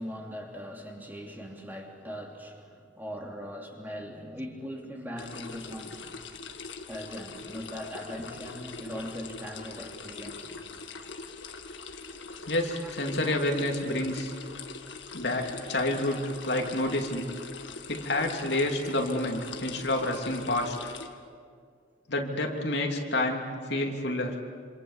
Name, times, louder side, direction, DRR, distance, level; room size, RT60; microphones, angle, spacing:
voice 1, 0.0-6.1 6.9-10.6 12.8-12.9 13.2-13.4, equal, 10° right, 0 dB, 3.0 m, -40 dB
sound 1, 5.2-21.1, left 4 dB, 85° left, 1.9 m, -42 dB
voice 2, 12.5-14.3 15.1-17.3 17.9-20.9 22.1-24.4, left 1 dB, 65° left, 2 dB, 2.8 m, -29 dB
27.5 x 27.0 x 7.4 m, 2.1 s
head